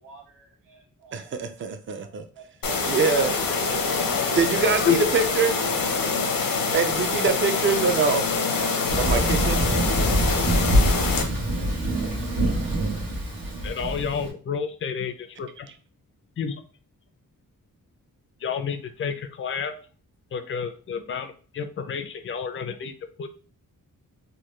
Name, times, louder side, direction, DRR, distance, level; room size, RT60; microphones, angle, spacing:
voice 1, 0.0-1.3 2.0-3.3 4.1-4.3, right 2 dB, 70° right, -6 dB, 0.9 m, -47 dB
voice 2, 1.1-2.2 2.8-3.4 4.4-5.5 6.7-8.2 9.0-9.6, right 5 dB, 35° right, 8 dB, 0.4 m, -24 dB
sound 1, 2.6-11.2, left 4 dB, 80° left, 0.7 m, -25 dB
voice 3, 3.5-5.0 13.6-15.7 16.4-16.6 18.4-19.7 20.3-22.9 23.2-23.3, left 7 dB, 40° left, 8 dB, 0.4 m, -30 dB
Thunder, 8.9-14.3, right 1 dB, 85° right, 1.3 m, -24 dB
3.7 x 2.2 x 3.1 m, 0.40 s
wide cardioid pair, 120°, 34 cm